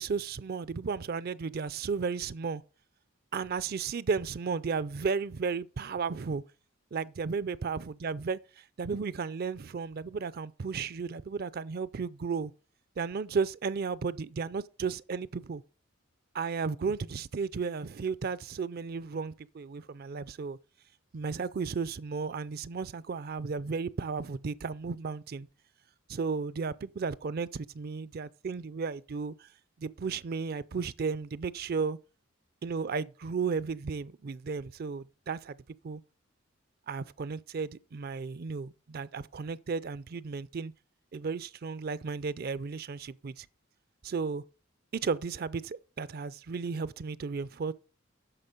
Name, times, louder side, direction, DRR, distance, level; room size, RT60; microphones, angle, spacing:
voice 1, 0.0-2.6 3.3-6.4 6.9-12.5 13.0-15.6 16.3-20.6 21.1-25.5 26.1-29.5 29.8-32.0 32.6-35.6 35.8-36.0 36.9-40.7 41.1-43.5 44.0-44.4 44.9-47.7, right 5 dB, 45° right, 0.4 m, -34 dB
9.9 x 6.6 x 5.2 m
head